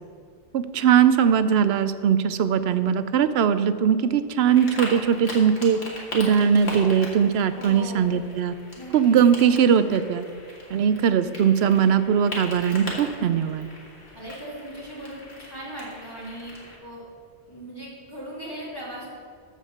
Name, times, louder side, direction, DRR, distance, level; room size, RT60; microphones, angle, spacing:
voice 1, 0.5-5.8 6.1-8.5 8.9-10.3 10.7-13.7, right 8 dB, 75° right, 12 dB, 0.8 m, -20 dB
sound 1, 4.5-16.8, left 1 dB, 75° left, 2.3 m, -39 dB
voice 2, 7.6-8.2 8.8-9.2 14.1-16.5 16.8-17.0 17.5-19.1, right 1 dB, 20° left, -7 dB, 2.7 m, -38 dB
14.0 x 5.1 x 6.5 m, 2.2 s
omnidirectional pair, 1.1 m